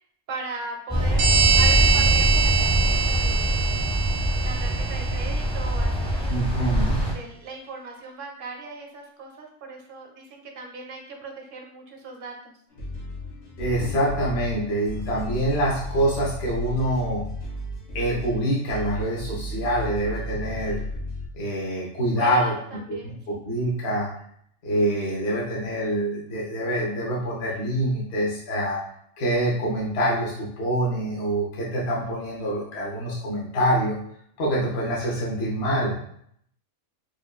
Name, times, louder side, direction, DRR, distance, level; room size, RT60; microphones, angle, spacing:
voice 1, 0.3-1.3 1.6-3.5 4.4-6.4 7.1-12.4 22.2-23.4, right 3 dB, 55° right, 2 dB, 0.7 m, -38 dB
sound 1, 0.9-7.1, equal, 5° left, 0.8 m, -23 dB
sound 2, 1.2-5.5, right 6 dB, 85° right, 1.0 m, -24 dB
voice 2, 6.3-7.0 13.6-17.2 17.9-20.8 21.3-22.5 23.3-24.1 24.6-28.8 29.2-34.0 34.4-36.0, right 1 dB, 60° left, -5 dB, 1.0 m, -25 dB
sound 3, 12.7-21.3, left 1 dB, 85° left, 1.7 m, -34 dB
4.8 x 2.5 x 2.3 m, 0.67 s
omnidirectional pair, 1.3 m